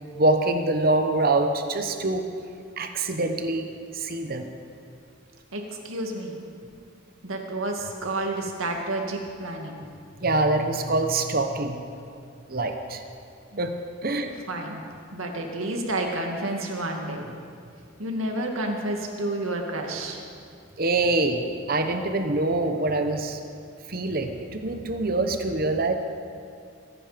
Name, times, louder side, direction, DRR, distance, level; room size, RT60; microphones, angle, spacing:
voice 1, 0.1-2.3 2.8-4.5 10.2-11.8 12.5-13.0 13.6-14.3 20.8-23.4 23.9-25.9, right 2 dB, 45° right, 6 dB, 0.9 m, -25 dB
voice 2, 5.5-6.4 7.2-9.8 14.5-14.8 15.1-17.3 18.0-20.2, right 1 dB, 80° right, 2 dB, 2.1 m, -30 dB
23.5 x 10.5 x 5.1 m, 2.4 s
head